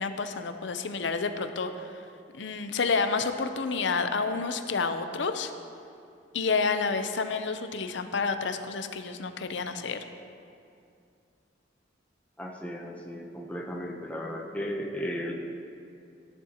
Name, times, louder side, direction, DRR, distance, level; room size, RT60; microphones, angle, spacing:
voice 1, 0.0-2.0 2.3-5.5 6.3-10.0, left 4 dB, 75° left, 8 dB, 0.6 m, -29 dB
voice 2, 12.4-15.3, equal, 5° left, 0 dB, 0.8 m, -35 dB
13.5 x 11.0 x 2.9 m, 2.5 s
head